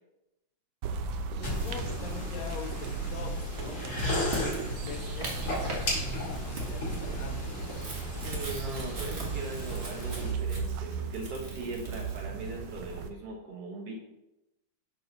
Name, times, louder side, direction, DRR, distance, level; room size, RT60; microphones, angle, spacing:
sound 1, 0.8-13.1, right 5 dB, 85° right, 1.4 m, -37 dB
voice 1, 0.9-7.8, left 5 dB, 70° left, 4 dB, 1.9 m, -44 dB
sound 2, 1.4-10.3, left 1 dB, 35° left, 2.5 m, -36 dB
sound 3, 3.9-5.9 6.2-12.2, right 1 dB, 35° right, 1.1 m, -40 dB
voice 2, 8.1-13.9, right 2 dB, 55° right, -1 dB, 2.2 m, -39 dB
8.1 x 4.7 x 5.5 m, 0.94 s
omnidirectional pair, 3.5 m